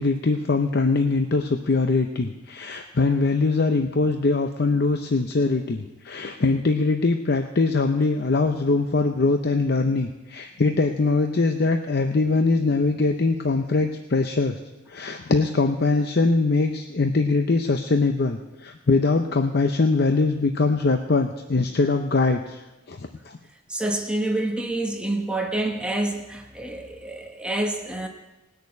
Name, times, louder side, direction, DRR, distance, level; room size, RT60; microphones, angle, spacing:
voice 1, 0.0-14.6 14.9-22.6 22.9-23.4, left 3 dB, 55° left, 6 dB, 0.7 m, -22 dB
voice 2, 23.7-28.1, right 1 dB, 5° right, 1 dB, 1.0 m, -27 dB
19.5 x 6.6 x 8.3 m, 1.1 s
head